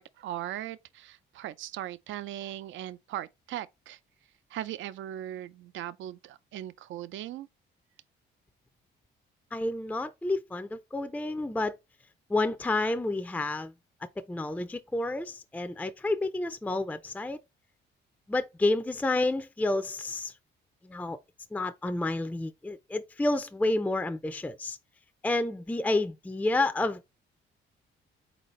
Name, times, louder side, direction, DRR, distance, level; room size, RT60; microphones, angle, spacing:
voice 1, 0.0-4.0 4.5-7.5, right 12 dB, 75° right, 0.5 m, -39 dB
voice 2, 9.5-11.7 12.3-13.7 14.2-17.4 18.3-20.3 20.8-21.2 21.5-24.8 25.2-27.1, left 2 dB, 5° left, 0.4 m, -30 dB
4.2 x 4.0 x 3.1 m
cardioid pair, 90°, 20 cm